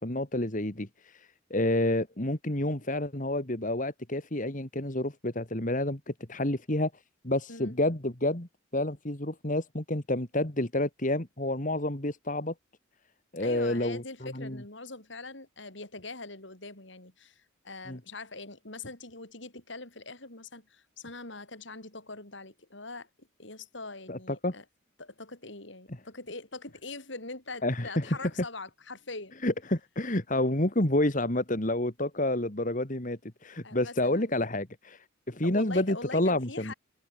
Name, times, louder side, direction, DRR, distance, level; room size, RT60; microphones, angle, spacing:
voice 1, 0.0-6.9 7.2-8.5 8.7-12.5 13.3-14.6 17.9-18.0 24.1-24.5 27.6-28.3 29.4-36.7, left 1 dB, 40° left, 2.4 m, -29 dB
voice 2, 13.4-24.6 25.0-29.4 33.6-34.4 35.4-36.7, left 3 dB, 60° left, 4.6 m, -43 dB
head